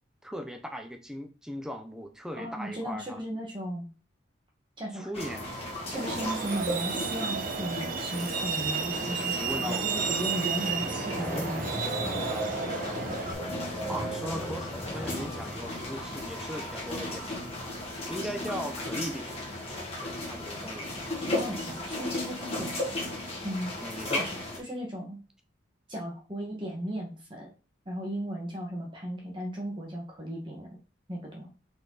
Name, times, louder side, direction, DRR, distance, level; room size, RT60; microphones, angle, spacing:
voice 1, 0.2-3.2 4.9-5.5 9.3-10.0 11.6-13.3 13.9-17.3 18.1-19.3 20.0-21.1 23.8-24.3, equal, 5° right, 0.8 m, -39 dB
voice 2, 2.4-3.9 4.8-5.1 5.9-12.1 21.3-22.7 23.4-23.7 24.1-24.4 24.7-25.2 25.9-27.5 27.9-30.7 31.1-31.5, right 1 dB, 25° right, 1.7 m, -36 dB
sound 1, 5.1-24.6, left 1 dB, 30° left, 2.1 m, -35 dB
Truck, 5.9-13.3, right 6 dB, 45° right, 0.5 m, -33 dB
sound 2, 7.9-20.6, left 1 dB, 15° left, 1.6 m, -42 dB
5.5 x 4.4 x 4.1 m
head